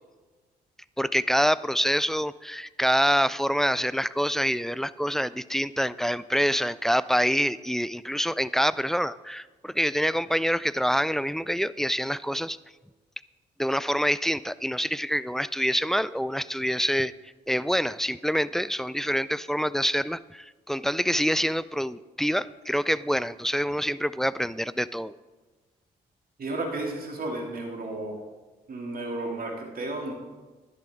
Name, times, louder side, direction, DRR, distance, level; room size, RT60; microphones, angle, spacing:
voice 1, 1.0-12.6 13.6-17.1 17.5-25.2, equal, ahead, 17 dB, 0.4 m, -26 dB
voice 2, 26.4-28.2 28.7-30.1, right 2 dB, 50° right, 1 dB, 2.8 m, -33 dB
11.5 x 11.0 x 3.7 m, 1.3 s
hypercardioid pair, 45°, 19 cm